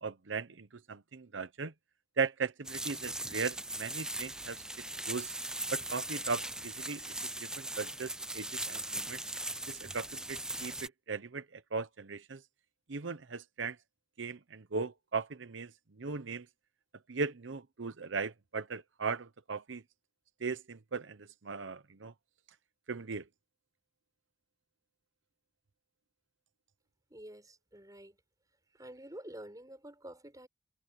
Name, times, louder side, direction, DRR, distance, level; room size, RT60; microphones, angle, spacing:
voice 1, 0.0-1.7 2.2-5.3 5.7-7.1 7.4-9.2 9.7-12.4 12.9-13.8 14.2-15.7 16.0-16.5 17.1-19.8 20.4-22.1 22.9-23.2, right 4 dB, 85° right, 0.8 m, -38 dB
sound 1, 2.6-10.9, right 1 dB, 5° right, 0.5 m, -39 dB
voice 2, 27.1-28.2 28.7-30.5, right 1 dB, 20° right, 5.4 m, -49 dB
head